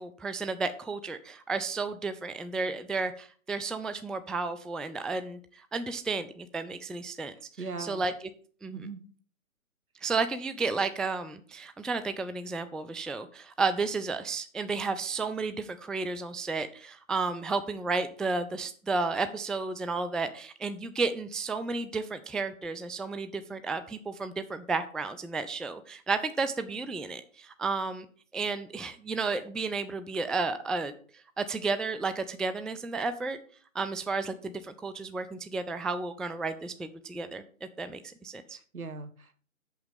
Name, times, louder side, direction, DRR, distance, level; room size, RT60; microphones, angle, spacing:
voice 1, 0.0-7.3 7.8-8.1 8.6-8.8 10.0-28.1 28.3-30.9 31.4-33.4 33.7-37.4 37.8-38.6, right 4 dB, ahead, 11 dB, 0.3 m, -32 dB
voice 2, 7.6-8.1 8.7-9.0 38.5-39.4, right 4 dB, 85° right, 10 dB, 1.6 m, -40 dB
7.2 x 5.7 x 7.2 m, 0.42 s
hypercardioid pair, 165°, 42 cm